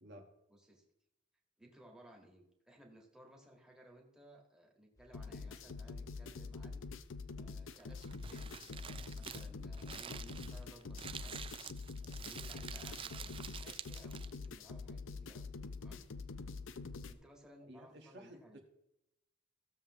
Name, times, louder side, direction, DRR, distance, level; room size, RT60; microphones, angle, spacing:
voice 1, 0.5-0.9 1.6-6.9 7.4-11.5 12.0-15.5 15.8-16.1 17.1-18.6, right 1 dB, 5° right, -1 dB, 1.7 m, -60 dB
sound 1, 5.0-16.8, left 1 dB, 15° left, 1.0 m, -69 dB
sound 2, 5.1-17.1, left 4 dB, 75° left, 0.6 m, -46 dB
Crumpling crinkling, 7.7-14.5, right 8 dB, 25° right, 0.3 m, -48 dB
voice 2, 17.6-18.6, equal, 60° right, 3 dB, 1.4 m, -54 dB
15.5 x 7.1 x 3.1 m, 0.85 s
head